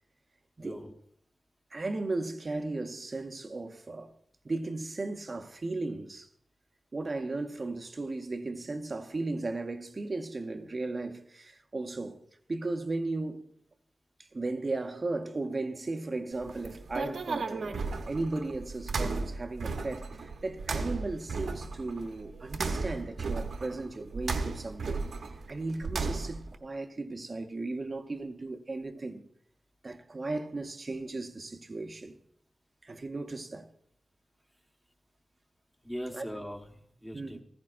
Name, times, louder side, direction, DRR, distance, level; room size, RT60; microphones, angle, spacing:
voice 1, 0.6-0.9 35.8-37.4, equal, 5° left, 1.1 m, -40 dB
voice 2, 1.7-4.1 4.4-6.3 6.9-12.2 12.5-13.4 14.2-25.0 25.5-29.3 29.8-32.2 32.8-33.7 36.1-36.2 37.1-37.4, right 2 dB, 30° right, 0.7 m, -36 dB
sound 1, 16.3-26.5, right 4 dB, 70° right, 0.9 m, -35 dB
15.0 x 15.0 x 2.5 m
wide cardioid pair, 165°, 0 cm